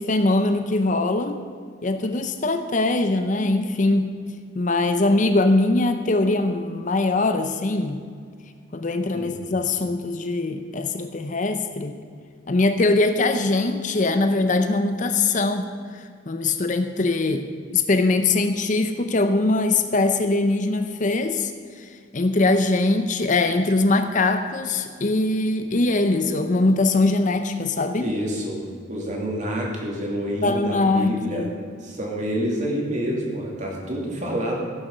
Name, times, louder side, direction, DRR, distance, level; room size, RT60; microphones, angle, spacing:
voice 1, 0.0-1.4 1.8-4.2 4.6-8.0 8.7-12.0 12.5-15.7 15.9-21.5 21.8-28.1 30.4-31.5, left 2 dB, 40° left, 8 dB, 0.6 m, -22 dB
voice 2, 28.0-31.4 31.8-34.6, equal, 40° right, -2 dB, 2.8 m, -28 dB
16.0 x 7.0 x 6.7 m, 2.1 s
head